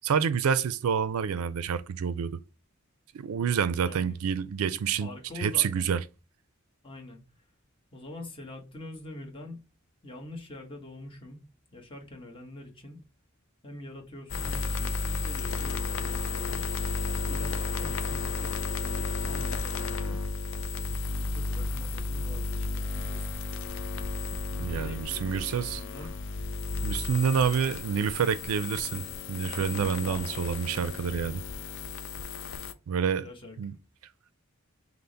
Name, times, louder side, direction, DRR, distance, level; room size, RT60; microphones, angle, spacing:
voice 1, 0.0-2.4 3.1-6.0 24.6-25.8 26.8-31.4 32.9-33.3 33.6-33.7, right 7 dB, 90° right, 0.4 m, -28 dB
voice 2, 5.0-5.9 6.8-7.2 7.9-9.6 10.0-11.4 11.7-13.0 13.6-16.6 17.3-20.2 20.9-23.3 24.7-26.1 30.0-30.5 33.2-33.5, left 2 dB, 25° left, 1.1 m, -45 dB
sound 1, 14.3-32.7, left 3 dB, 65° left, 0.5 m, -33 dB
5.5 x 2.0 x 3.9 m
head